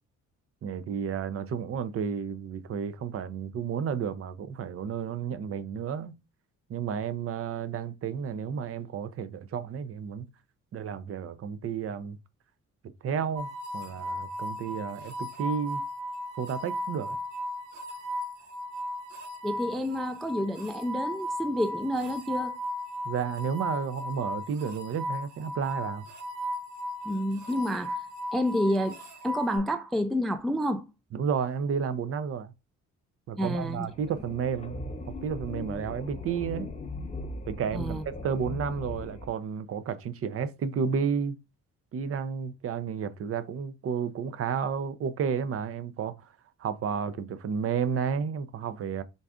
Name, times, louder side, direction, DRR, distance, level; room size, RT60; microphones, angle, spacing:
voice 1, 0.6-6.1 6.7-10.3 10.7-12.2 13.0-13.5 13.7-15.8 16.4-17.2 23.0-26.0 31.1-32.5 33.3-36.7 37.5-41.4 41.9-46.3 46.6-49.0, right 7 dB, 50° right, 0.5 m, -32 dB
sound 1, 13.4-29.6, left 1 dB, 75° right, 1.1 m, -36 dB
voice 2, 19.4-22.5 27.1-28.0 28.3-30.8 33.4-33.9 37.7-38.0, equal, ahead, 0.3 m, -29 dB
sound 2, 33.5-39.3, left 3 dB, 25° left, 0.7 m, -39 dB
3.9 x 2.4 x 3.5 m
cardioid pair, 90°, 30 cm